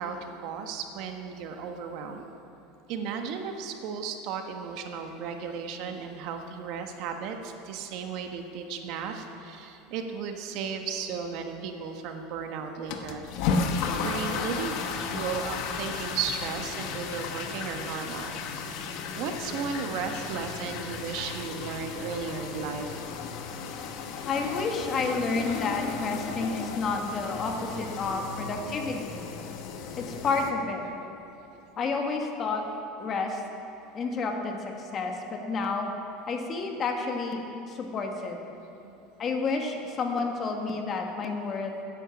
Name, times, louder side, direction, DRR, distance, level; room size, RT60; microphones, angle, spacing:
voice 1, 0.0-2.3 2.9-13.2 13.9-14.8 15.1-18.4 19.1-23.0 23.8-23.9 27.8-28.9 38.8-39.0 41.4-41.5, right 6 dB, 60° right, 5 dB, 1.3 m, -35 dB
sound 1, 12.9-30.5, left 5 dB, 60° left, 1.2 m, -34 dB
voice 2, 24.2-29.2 30.0-30.8 31.8-32.6 33.0-33.4 33.9-35.9 36.3-37.4 37.7-38.4 39.2-41.7, left 4 dB, 30° left, 3 dB, 1.5 m, -30 dB
15.0 x 10.0 x 5.9 m, 2.9 s
supercardioid pair, 140°, 0 cm